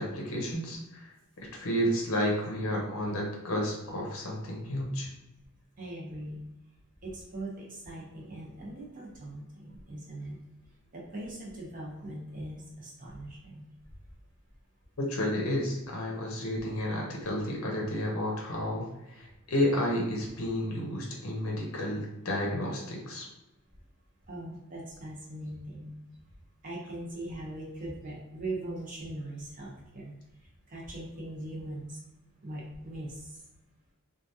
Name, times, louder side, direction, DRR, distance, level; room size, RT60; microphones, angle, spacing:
voice 1, 0.0-5.1 15.0-23.3, equal, 70° left, -1 dB, 0.7 m, -31 dB
voice 2, 5.8-6.4 7.0-10.4 10.9-13.7 24.3-26.0 26.6-30.1 30.7-32.0 32.4-33.4, right 1 dB, 40° right, -3 dB, 0.7 m, -40 dB
3.1 x 2.3 x 2.7 m, 0.94 s
head